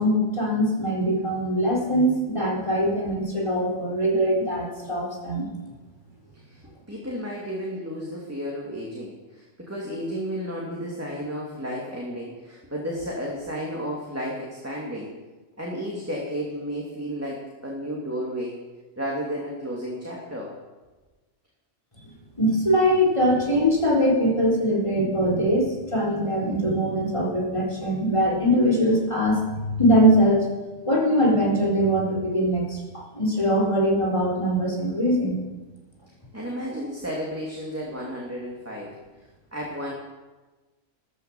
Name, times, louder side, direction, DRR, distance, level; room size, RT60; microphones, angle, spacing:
voice 1, 0.0-5.5 22.4-30.5 30.8-35.4, equal, 25° left, -3 dB, 4.2 m, -22 dB
voice 2, 6.9-15.1 15.6-18.6 19.0-20.5 36.3-39.0 39.5-39.9, equal, 10° right, -4 dB, 2.7 m, -32 dB
14.0 x 14.0 x 7.3 m, 1.2 s
omnidirectional pair, 1.3 m